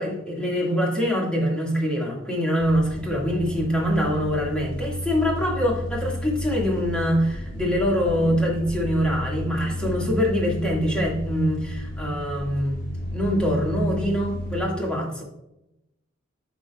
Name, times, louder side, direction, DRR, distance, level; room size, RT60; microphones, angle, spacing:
voice 1, 0.0-12.8 13.1-15.2, equal, 5° left, -3 dB, 1.9 m, -24 dB
sound 1, 2.6-14.6, equal, 55° left, 2.5 m, -32 dB
9.2 x 5.8 x 2.4 m, 0.87 s
head